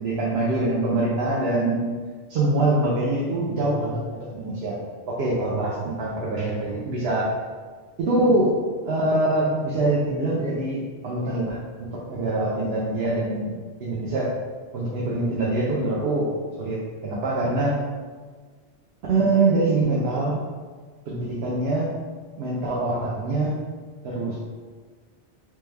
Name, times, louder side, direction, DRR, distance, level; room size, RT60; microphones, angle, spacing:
voice 1, 0.0-1.9 2.3-4.8 5.1-7.3 8.0-8.5 8.8-14.3 14.7-16.3 16.6-17.8 19.1-20.4 21.1-21.9 22.4-23.6 24.0-24.4, right 2 dB, 65° right, -5 dB, 0.9 m, -24 dB
3.3 x 3.1 x 3.3 m, 1.5 s
omnidirectional pair, 1.2 m